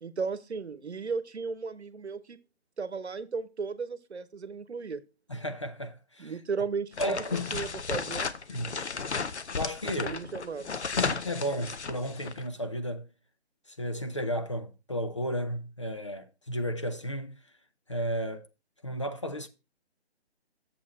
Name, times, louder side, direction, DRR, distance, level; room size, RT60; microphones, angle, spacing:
voice 1, 0.0-2.4 2.8-5.0 6.2-7.2 7.5-8.3 10.0-10.8, right 5 dB, 80° right, 1.0 m, -35 dB
voice 2, 5.3-6.3 7.0-7.6 8.5-8.8 9.5-10.2 11.0-13.1 13.8-17.4 17.9-18.5 18.8-19.5, equal, 30° left, 0.4 m, -33 dB
sound 1, 6.9-12.4, left 5 dB, 85° left, 0.9 m, -34 dB
7.3 x 6.4 x 4.3 m
figure-of-eight pair, 155°, 33 cm